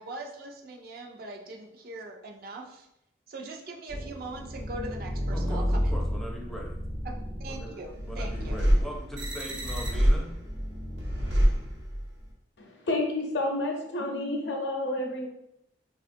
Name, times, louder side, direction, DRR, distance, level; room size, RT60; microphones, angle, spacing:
voice 1, 0.0-2.9 3.3-5.8 7.0-7.1 7.4-8.6, right 2 dB, 55° right, 2 dB, 0.4 m, -41 dB
sound 1, 3.9-12.2, equal, 80° right, 0.9 m, -28 dB
voice 2, 5.3-6.8 7.4-10.3, equal, ahead, -2 dB, 0.4 m, -41 dB
voice 3, 12.6-15.3, left 2 dB, 70° left, 1 dB, 0.6 m, -30 dB
3.5 x 2.4 x 2.5 m, 0.82 s
head